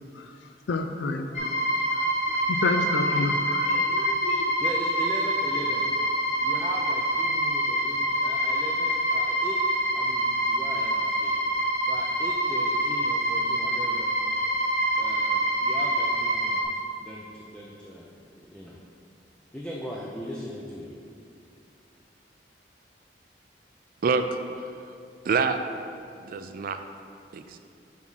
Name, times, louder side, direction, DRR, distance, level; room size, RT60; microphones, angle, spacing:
voice 1, 0.7-1.5 1.9-4.6, left 3 dB, 80° left, 6 dB, 0.4 m, -30 dB
sound 1, 1.3-16.6, right 1 dB, 40° left, 1.1 m, -26 dB
voice 2, 4.6-5.9 6.4-9.6 9.9-11.3 11.8-14.2 15.0-18.8 19.5-21.0, equal, 5° left, -4 dB, 0.5 m, -39 dB
voice 3, 24.0-24.9 25.2-25.6 26.2-26.8 27.3-27.6, right 4 dB, 55° right, 8 dB, 0.3 m, -27 dB
5.9 x 4.7 x 5.6 m, 2.5 s
head